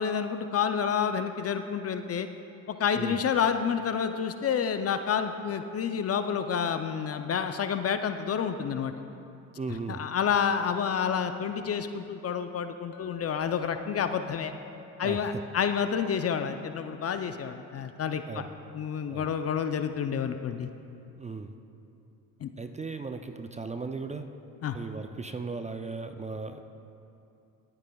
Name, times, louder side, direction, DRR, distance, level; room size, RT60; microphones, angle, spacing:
voice 1, 0.0-2.3 2.7-8.9 9.9-14.5 15.0-18.4 18.7-20.7 22.4-22.5 24.6-24.8, left 7 dB, 35° left, 9 dB, 0.5 m, -29 dB
voice 2, 9.6-10.0 15.0-15.4 18.3-18.5 19.1-19.3 21.2-21.5 22.6-24.3 24.7-26.6, right 4 dB, 15° right, 7 dB, 0.5 m, -37 dB
Chink clink, 12.9-17.1, left 3 dB, 70° left, 1.4 m, -49 dB
21.0 x 8.8 x 2.3 m, 2.7 s
supercardioid pair, 75°, 41 cm